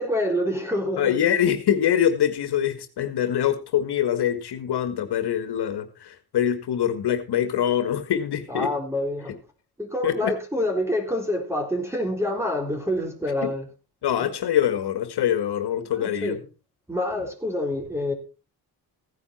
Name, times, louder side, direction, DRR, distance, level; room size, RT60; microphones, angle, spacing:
voice 1, 0.0-1.2 8.5-9.3 9.8-13.7 14.2-14.3 15.9-16.5 16.9-18.1, left 1 dB, 5° right, 3.9 m, -27 dB
voice 2, 1.0-8.7 10.0-10.3 13.4-13.5 14.0-16.4, left 10 dB, 75° left, 1.9 m, -24 dB
16.0 x 10.0 x 4.3 m
wide cardioid pair, 130°, 40 cm